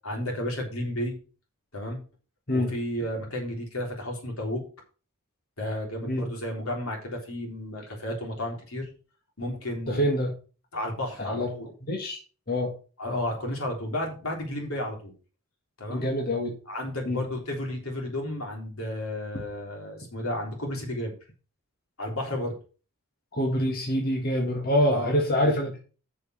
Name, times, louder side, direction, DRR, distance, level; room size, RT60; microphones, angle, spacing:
voice 1, 0.0-1.2 1.7-2.0 2.5-4.6 5.6-8.9 9.4-10.0 10.7-11.7 13.0-15.1 15.8-16.1 16.7-21.1 22.0-22.6 24.9-25.2, left 1 dB, 80° left, 1 dB, 3.7 m, -32 dB
voice 2, 9.9-10.3 11.2-11.5 11.9-12.2 12.5-12.7 15.9-16.6 17.0-17.2 23.3-25.8, equal, 45° left, 0 dB, 1.9 m, -25 dB
7.3 x 6.5 x 6.3 m, 0.36 s
head